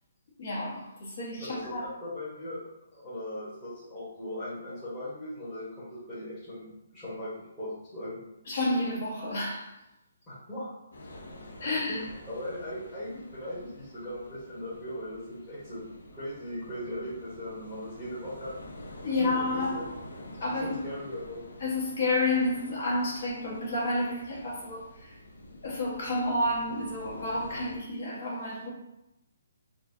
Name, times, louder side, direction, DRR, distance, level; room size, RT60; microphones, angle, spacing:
voice 1, 0.4-1.9 8.4-9.7 11.6-12.0 19.0-19.9 20.4-20.8 21.6-25.2 25.6-28.7, left 2 dB, 50° left, -5 dB, 1.4 m, -30 dB
voice 2, 1.4-6.7 6.9-8.2 10.3-10.7 11.7-15.8 16.1-18.5 19.1-20.0 20.6-21.4, left 1 dB, 15° left, -14 dB, 1.3 m, -39 dB
sound 1, 10.9-27.8, left 1 dB, 90° left, 0.6 m, -47 dB
4.3 x 2.3 x 2.7 m, 0.89 s
hypercardioid pair, 165°, 0 cm